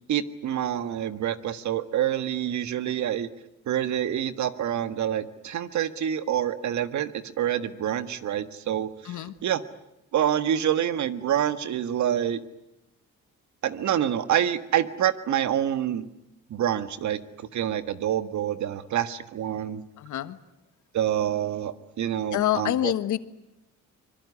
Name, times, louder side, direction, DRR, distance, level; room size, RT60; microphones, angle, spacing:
voice 1, 0.1-3.3 3.7-9.1 9.4-9.6 10.1-12.4 13.6-16.1 16.5-19.8 20.9-22.9, right 10 dB, 70° right, 12 dB, 1.7 m, -27 dB
voice 2, 20.0-20.4 22.3-23.2, left 12 dB, 75° left, 13 dB, 1.5 m, -26 dB
24.5 x 23.0 x 9.9 m, 0.90 s
cardioid pair, 90°, 30 cm